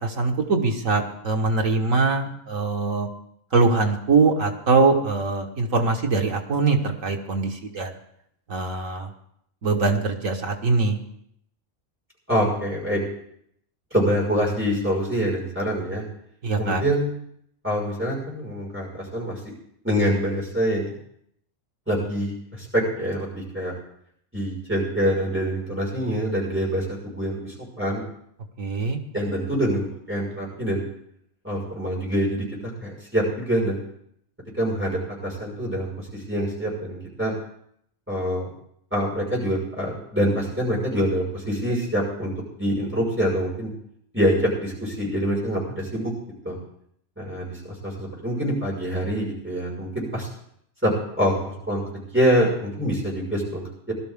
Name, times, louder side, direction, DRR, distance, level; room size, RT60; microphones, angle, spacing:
voice 1, 0.0-3.1 3.5-7.9 8.5-9.1 9.6-11.0 16.4-16.8 28.6-29.0, right 3 dB, 90° right, 2 dB, 1.9 m, -22 dB
voice 2, 12.3-13.0 13.9-16.0 16.6-17.1 17.6-19.4 19.8-20.9 21.9-23.7 24.3-28.0 29.1-30.9 31.4-32.5 32.8-33.8 34.6-37.3 38.1-38.5 38.9-42.3 42.6-43.7 44.1-46.1 46.4-46.6 47.2-50.3 50.8-53.9, equal, 10° right, -4 dB, 5.4 m, -25 dB
18.5 x 12.5 x 3.6 m, 0.71 s
omnidirectional pair, 1.3 m